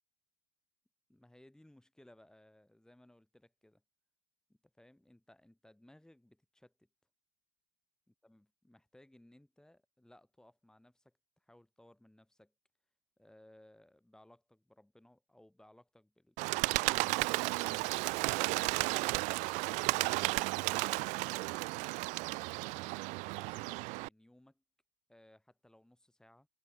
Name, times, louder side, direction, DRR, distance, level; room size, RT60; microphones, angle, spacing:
voice 1, 1.1-3.8 4.5-6.9 8.1-12.5 13.2-18.0 18.7-20.3 20.7-22.9 23.3-24.6 25.1-26.5, left 1 dB, 5° left, 6.8 m, -62 dB
Bird, 16.4-24.1, right 27 dB, 50° right, 0.5 m, -33 dB
figure-of-eight pair, 75°, 16 cm